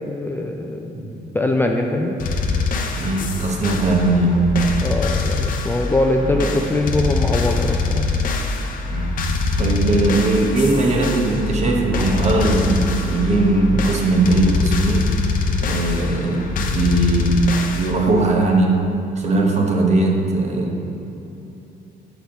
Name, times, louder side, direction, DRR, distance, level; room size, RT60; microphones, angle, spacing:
voice 1, 0.1-0.9 1.3-2.2 4.8-8.1, left 2 dB, 10° left, 2 dB, 0.3 m, -22 dB
sound 1, 2.2-17.9, left 3 dB, 55° left, 0.6 m, -23 dB
voice 2, 2.9-4.6 6.2-6.4 8.8-9.2 9.6-15.1 15.6-18.8 19.2-20.8, right 2 dB, 40° right, 1 dB, 1.0 m, -19 dB
6.9 x 4.2 x 5.1 m, 3.0 s
cardioid pair, 110°, 17 cm